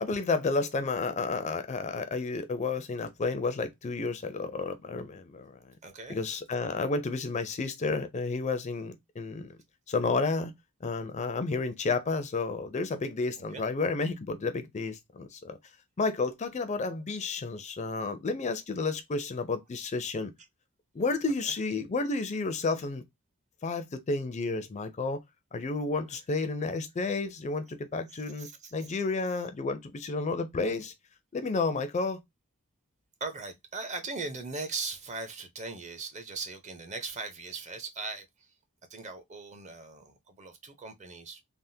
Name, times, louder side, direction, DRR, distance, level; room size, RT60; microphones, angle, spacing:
voice 1, 0.0-5.7 6.1-9.5 9.9-10.5 10.8-15.6 16.0-20.3 20.9-23.0 23.6-25.2 25.5-30.9 31.3-32.2, left 3 dB, 30° left, 0.4 m, -31 dB
voice 2, 5.8-6.2 13.5-13.7 21.4-21.5 28.1-29.0 33.2-38.5 38.9-41.4, right 3 dB, 35° right, 0.7 m, -39 dB
3.4 x 2.0 x 2.6 m
head